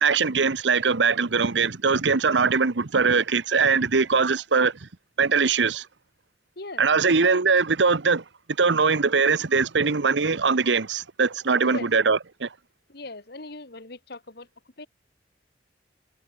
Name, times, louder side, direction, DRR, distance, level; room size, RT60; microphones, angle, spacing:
voice 1, 0.0-4.9 5.2-5.9 6.8-8.2 8.6-12.5, right 5 dB, 90° right, 1.0 m, -21 dB
voice 2, 12.9-14.5 14.8-14.9, left 2 dB, 60° left, 2.2 m, -39 dB
head